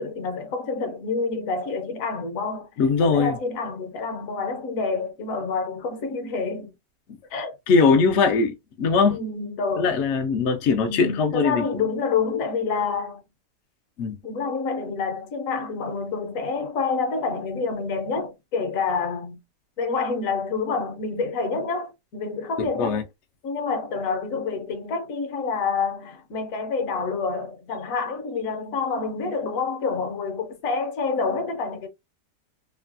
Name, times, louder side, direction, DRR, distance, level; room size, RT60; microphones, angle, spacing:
voice 1, 0.0-2.7 3.0-6.7 7.3-7.5 9.1-9.9 10.8-13.3 14.2-19.4 19.8-23.0 23.4-31.9, left 4 dB, 65° left, 0.9 m, -28 dB
voice 2, 2.8-3.4 7.7-9.2 9.8-11.8 14.0-14.2 22.6-23.0, left 4 dB, 80° left, 0.6 m, -21 dB
3.1 x 2.2 x 2.4 m
omnidirectional pair, 1.8 m